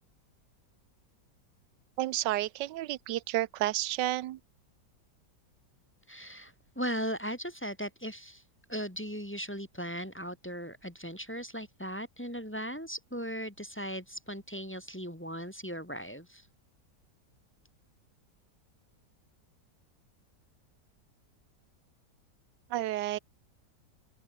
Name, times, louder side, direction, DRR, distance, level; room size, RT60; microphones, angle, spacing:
voice 1, 2.0-4.4 22.7-23.2, right 15 dB, 90° right, 1.3 m, -31 dB
voice 2, 6.1-8.4 8.7-16.5, equal, 5° left, 2.0 m, -38 dB
open air
omnidirectional pair, 1.8 m